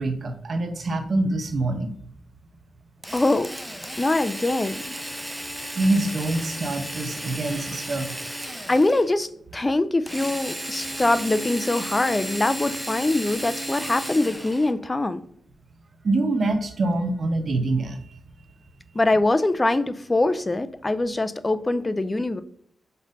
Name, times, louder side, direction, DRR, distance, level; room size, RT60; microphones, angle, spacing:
voice 1, 0.0-1.9 5.7-8.1 16.0-18.2, right 2 dB, 55° right, 7 dB, 0.9 m, -25 dB
Drill, 3.0-9.1 10.1-14.7, right 1 dB, 5° right, 0.8 m, -34 dB
voice 2, 3.1-3.5 4.0-4.9 8.7-15.2 18.9-22.4, left 2 dB, 25° left, 12 dB, 0.5 m, -23 dB
5.4 x 3.9 x 5.3 m, 0.66 s
cardioid pair, 85°, 0 cm